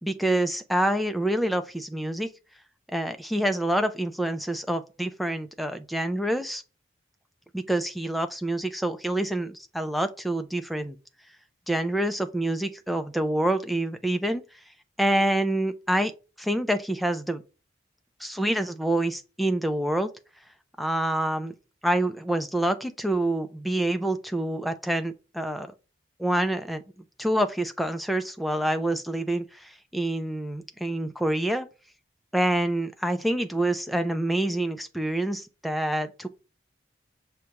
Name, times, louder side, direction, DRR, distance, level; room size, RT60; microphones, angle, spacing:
voice 1, 0.0-2.3 2.9-6.6 7.5-11.0 11.7-14.4 15.0-16.1 16.4-17.4 18.2-20.1 20.8-21.5 21.8-25.7 26.2-26.8 27.2-31.7 32.3-36.3, right 1 dB, ahead, 0.3 m, -27 dB
6.4 x 2.3 x 2.9 m
head